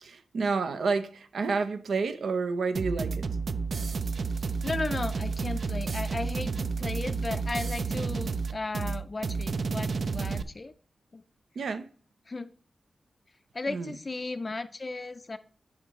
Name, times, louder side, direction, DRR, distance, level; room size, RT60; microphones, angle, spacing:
voice 1, 0.0-3.3 11.6-11.9 13.7-14.0, right 4 dB, 80° right, 0.7 m, -30 dB
sound 1, 2.7-10.4, right 4 dB, 55° right, 0.4 m, -31 dB
voice 2, 4.6-10.7 11.1-11.2 12.3-12.5 13.5-15.4, left 3 dB, 30° left, 0.4 m, -35 dB
10.5 x 4.9 x 3.1 m
wide cardioid pair, 145°, 0 cm